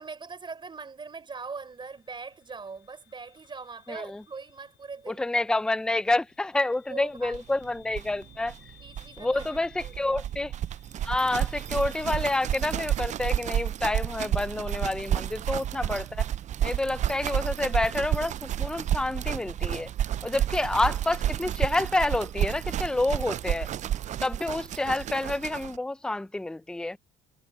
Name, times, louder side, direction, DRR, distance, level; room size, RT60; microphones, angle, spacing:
voice 1, 0.0-5.4 6.9-7.4 7.6-7.7 8.8-10.3 23.9-24.2, right 4 dB, 30° right, 4.3 m, -42 dB
sound 1, 1.7-14.7, left 18 dB, 80° left, 5.9 m, -59 dB
voice 2, 3.9-4.2 5.1-8.5 9.2-10.5 11.0-16.3 16.6-19.9 20.2-23.7 24.2-27.0, left 2 dB, 5° left, 0.6 m, -28 dB
sound 2, 7.3-7.4 7.6-7.7 7.9-25.8, right 11 dB, 45° right, 0.4 m, -31 dB
cardioid pair, 110°, 17 cm